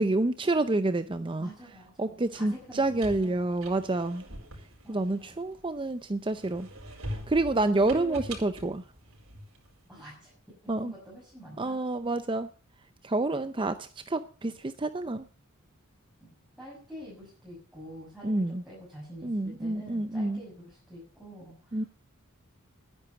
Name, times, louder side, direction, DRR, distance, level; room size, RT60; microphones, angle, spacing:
voice 1, 0.0-1.5 2.0-4.2 4.9-6.7 7.3-8.8 10.7-10.9 11.6-12.5 13.0-15.3 18.2-18.6 19.2-20.4 21.7-21.8, right 2 dB, 25° right, 10 dB, 0.6 m, -28 dB
voice 2, 1.4-3.4 4.8-5.4 7.8-8.3 9.9-10.3 10.6-11.8 16.2-16.3 16.6-21.9, equal, ahead, -7 dB, 6.3 m, -47 dB
Seat belt unbuckle & buckling, 2.6-5.9 6.3-9.7, right 1 dB, 80° right, 4.7 m, -43 dB
11.5 x 10.0 x 6.9 m, 0.40 s
head